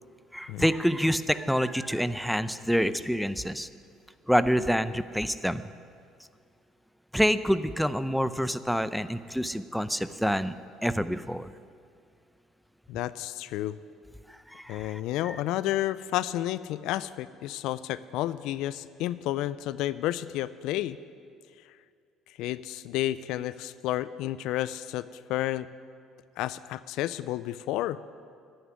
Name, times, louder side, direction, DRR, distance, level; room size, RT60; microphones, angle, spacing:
voice 1, 0.3-3.7 4.3-5.6 7.1-10.6 10.8-11.5 14.3-15.4, equal, ahead, 13 dB, 0.6 m, -27 dB
voice 2, 12.9-13.8 14.7-21.0 22.4-25.7 26.4-28.0, left 14 dB, 70° left, 16 dB, 0.4 m, -31 dB
11.5 x 9.5 x 9.6 m, 2.3 s
hypercardioid pair, 70°, 0 cm